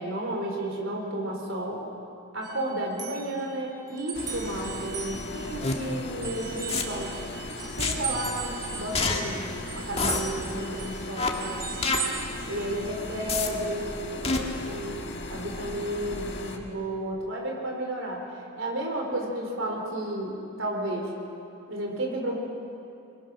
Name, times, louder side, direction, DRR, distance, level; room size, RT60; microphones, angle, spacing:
voice 1, 0.0-1.8 2.3-7.1 7.8-11.6 12.5-18.3 18.6-21.1 21.7-22.3, right 1 dB, 80° right, 0 dB, 3.5 m, -32 dB
sound 1, 2.4-5.9 6.2-13.1, right 6 dB, 20° right, 2.2 m, -38 dB
sound 2, 4.1-16.6, left 2 dB, 60° left, 1.9 m, -38 dB
sound 3, 5.6-5.7 6.7-6.8 7.8-7.9 8.9-9.2 10.0-10.2 11.2-11.3 11.8-12.0 13.3-13.5 14.2-14.4, left 4 dB, 30° left, 1.6 m, -26 dB
25.5 x 21.0 x 6.0 m, 2.7 s
head